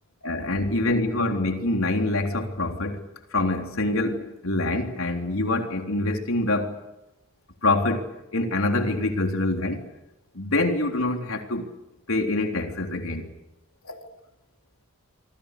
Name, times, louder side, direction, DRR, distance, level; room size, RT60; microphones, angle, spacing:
voice 1, 0.2-6.8 7.6-9.9 10.3-11.7 12.1-13.3 13.8-14.1, left 2 dB, 75° left, 3.7 m, -25 dB
27.0 x 26.0 x 6.8 m
head